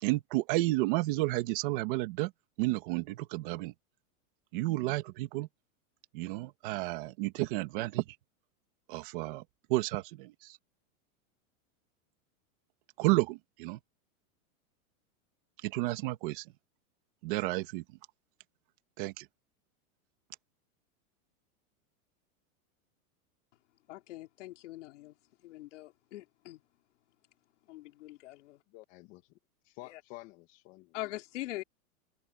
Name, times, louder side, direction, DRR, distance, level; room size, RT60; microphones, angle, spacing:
voice 1, 0.0-2.3 2.6-3.7 4.5-5.5 6.1-8.0 8.9-9.4 9.7-10.6 13.0-13.8 15.6-16.4 17.2-17.8 19.0-19.3, right 20 dB, 35° right, 2.0 m, -31 dB
voice 2, 23.9-25.1 25.4-26.6 27.7-28.6 29.9-30.0 30.9-31.6, left 16 dB, 55° left, 4.3 m, -43 dB
voice 3, 28.7-29.2 29.7-31.0, left 19 dB, 30° left, 2.3 m, -50 dB
supercardioid pair, 175°, 43 cm